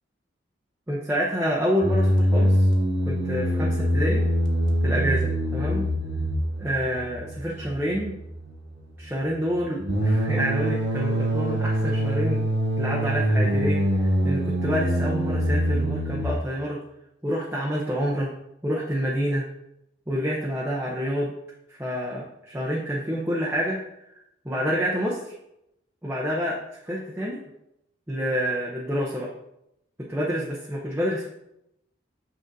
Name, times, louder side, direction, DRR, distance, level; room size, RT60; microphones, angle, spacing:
voice 1, 0.9-2.7 3.0-4.2 4.8-5.8 6.6-8.1 9.0-12.4 12.8-16.8 17.2-18.3 18.6-19.4 20.1-21.3 21.7-23.8 24.4-25.4 26.0-27.4 28.1-29.3 30.1-31.2, equal, 10° right, -5 dB, 0.7 m, -28 dB
sound 1, 1.8-16.3, equal, 75° right, 1.3 m, -24 dB
6.5 x 6.3 x 2.7 m, 0.85 s
head